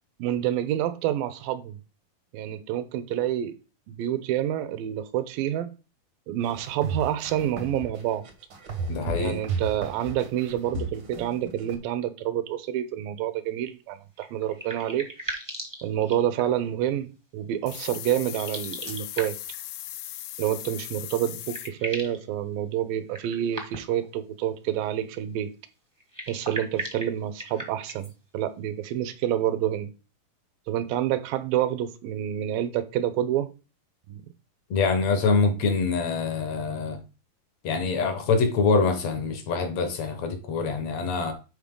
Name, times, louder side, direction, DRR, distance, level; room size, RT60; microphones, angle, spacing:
voice 1, 0.2-1.8 2.3-3.5 3.9-5.7 6.3-8.2 9.2-15.1 15.8-19.4 20.4-25.5 26.3-29.9 30.7-33.5 34.1-34.2, right 11 dB, 80° right, 2.4 m, -28 dB
sound 1, 6.4-11.8, right 3 dB, 65° right, 1.1 m, -32 dB
voice 2, 8.9-9.4 34.7-37.0 37.6-41.3, left 4 dB, 65° left, 1.8 m, -25 dB
sound 2, 14.1-16.7 18.3-19.6 20.9-21.0 21.3-22.2 23.1-24.0 26.0-28.1, right 1 dB, 20° right, 0.5 m, -38 dB
sound 3, 17.7-21.7, left 14 dB, 85° left, 1.8 m, -38 dB
11.0 x 4.4 x 3.8 m
omnidirectional pair, 4.3 m